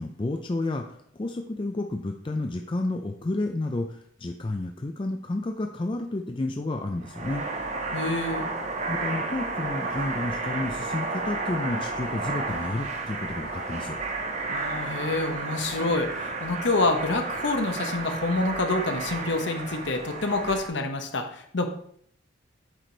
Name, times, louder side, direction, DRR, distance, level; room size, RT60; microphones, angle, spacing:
voice 1, 0.0-7.4 8.9-14.0, left 2 dB, 25° left, 4 dB, 0.4 m, -31 dB
sound 1, 7.0-20.7, right 3 dB, 35° right, 0.8 m, -32 dB
voice 2, 7.9-8.5 14.5-21.6, left 2 dB, 60° left, 5 dB, 1.0 m, -27 dB
7.6 x 4.9 x 3.9 m, 0.65 s
head